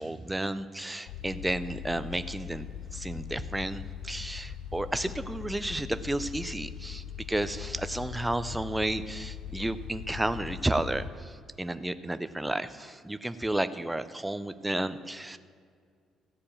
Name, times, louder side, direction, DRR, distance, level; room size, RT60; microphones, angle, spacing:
voice 1, 0.0-15.4, right 1 dB, 5° right, 12 dB, 0.4 m, -32 dB
sound 1, 1.1-11.1, left 9 dB, 75° left, 0.5 m, -41 dB
14.0 x 4.8 x 8.5 m, 2.1 s
cardioid pair, 170°, 0 cm